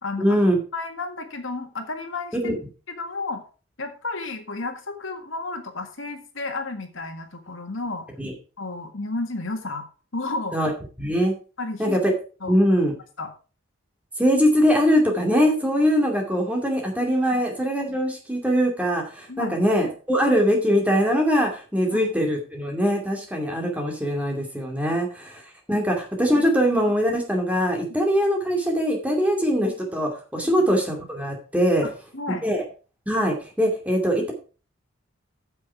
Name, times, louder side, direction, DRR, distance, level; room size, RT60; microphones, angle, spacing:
voice 1, 0.2-0.6 2.4-2.6 8.2-8.3 10.5-10.7 11.0-11.3 11.8-12.1 12.4-12.9 14.2-25.4 25.7-31.8 32.3-32.6 33.1-34.3, equal, 5° right, 1 dB, 2.4 m, -22 dB
voice 2, 0.7-2.3 3.0-3.4 3.8-8.0 8.6-9.9 10.1-10.6 11.6-12.0 12.4-12.6 13.2-13.3 19.3-19.6 21.9-22.0 30.4-30.5 31.8-32.5, left 3 dB, 75° left, 6 dB, 1.8 m, -32 dB
9.4 x 7.4 x 4.6 m, 0.35 s
head